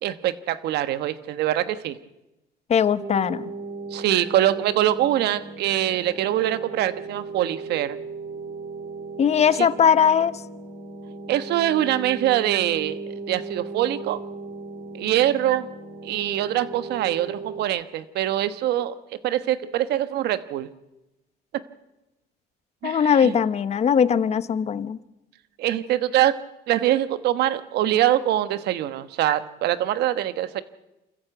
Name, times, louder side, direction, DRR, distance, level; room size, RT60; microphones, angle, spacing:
voice 1, 0.0-2.0 3.9-8.0 9.6-9.7 11.3-13.0 13.3-14.2 14.9-15.7 16.0-18.9 19.2-20.7 22.8-23.3 25.6-26.3 26.7-30.6, right 12 dB, 75° right, 13 dB, 1.2 m, -23 dB
voice 2, 2.7-3.5 9.2-10.3 22.8-25.0, left 7 dB, 40° left, 15 dB, 0.9 m, -20 dB
sound 1, 3.0-17.6, right 3 dB, 55° right, 2.7 m, -37 dB
26.5 x 14.5 x 8.0 m, 0.98 s
cardioid pair, 110°, 17 cm